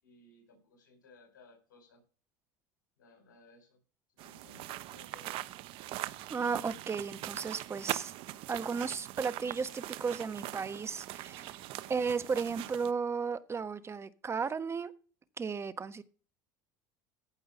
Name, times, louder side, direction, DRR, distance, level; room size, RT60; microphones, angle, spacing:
voice 1, 0.0-2.0 3.0-3.8 4.1-5.4, left 3 dB, 90° left, 1 dB, 4.9 m, -60 dB
sound 1, 4.2-12.9, right 16 dB, 60° right, 0.9 m, -41 dB
voice 2, 6.3-8.1 8.5-14.9 15.4-16.0, right 5 dB, 25° right, 14 dB, 1.2 m, -34 dB
15.0 x 5.3 x 5.1 m, 0.39 s
hypercardioid pair, 90°, 10 cm